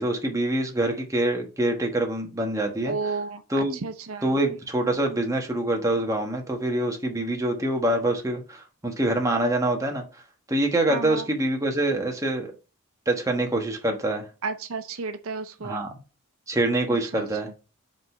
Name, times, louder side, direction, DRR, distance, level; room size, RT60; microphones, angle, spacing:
voice 1, 0.0-2.9 3.5-3.8 4.2-10.0 10.5-12.5 13.1-14.2 15.6-15.9 16.5-17.5, right 1 dB, 15° right, 1.2 m, -25 dB
voice 2, 2.9-4.3 10.9-11.3 14.4-15.8 17.1-17.2, right 4 dB, 75° right, 0.6 m, -32 dB
5.2 x 4.0 x 5.5 m
head